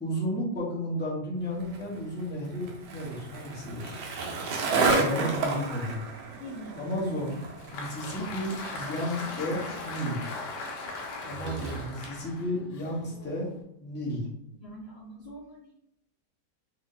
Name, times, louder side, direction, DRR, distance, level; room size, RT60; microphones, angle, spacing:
voice 1, 0.0-4.0 4.8-6.0 6.7-7.4 7.7-10.2 11.2-13.5 13.8-14.2, equal, 10° left, -6 dB, 0.7 m, -33 dB
Skateboard, 1.6-12.1, right 3 dB, 70° right, 1.3 m, -33 dB
voice 2, 6.4-6.8 8.1-8.3 14.6-15.7, equal, 55° left, -4 dB, 0.7 m, -43 dB
Applause, 7.3-13.6, left 3 dB, 70° left, 1.3 m, -39 dB
3.3 x 2.6 x 3.9 m, 0.78 s
omnidirectional pair, 2.0 m